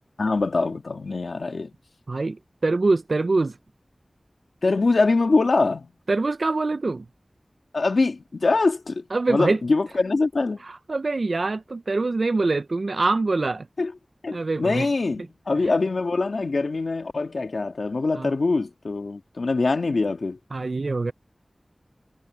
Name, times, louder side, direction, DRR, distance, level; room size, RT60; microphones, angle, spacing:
voice 1, 0.2-1.7 4.6-5.9 7.7-10.6 13.8-13.9 14.2-20.4, left 3 dB, 90° left, 2.3 m, -23 dB
voice 2, 2.1-3.5 6.1-7.0 9.1-9.6 10.6-13.7 14.3-14.9 18.2-18.3 20.5-21.1, right 3 dB, 70° right, 0.4 m, -24 dB
wide cardioid pair, 55°, 0 cm